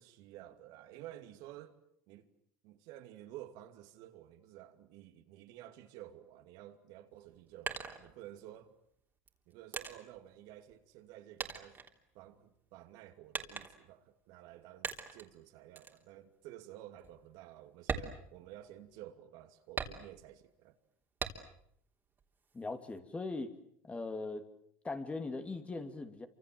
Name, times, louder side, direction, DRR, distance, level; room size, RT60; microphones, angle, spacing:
voice 1, 0.0-1.8 2.1-2.3 2.6-8.7 9.5-11.8 12.1-20.7, right 13 dB, 65° right, 2.5 m, -52 dB
sound 1, 7.1-8.6 9.3-11.1 11.4-12.6 13.3-14.0 14.8-15.3 15.8-16.0 16.5-16.6 17.0-17.2 17.8-19.0 19.8-20.4 21.2-21.7 22.1-23.0, right 5 dB, 25° right, 3.4 m, -42 dB
voice 2, 22.5-23.5 23.8-24.4 24.8-26.3, left 3 dB, 15° left, 2.7 m, -40 dB
27.5 x 25.5 x 7.8 m
supercardioid pair, 105°, 7 cm